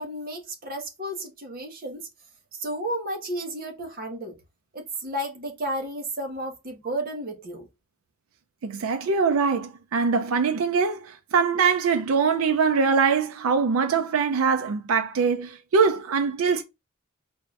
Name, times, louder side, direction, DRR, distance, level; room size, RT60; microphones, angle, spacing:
voice 1, 0.0-2.0 2.6-4.3 4.7-7.7, right 1 dB, 45° right, 1.2 m, -32 dB
voice 2, 8.6-16.6, right 5 dB, 75° right, 0.4 m, -23 dB
4.2 x 2.6 x 3.1 m
head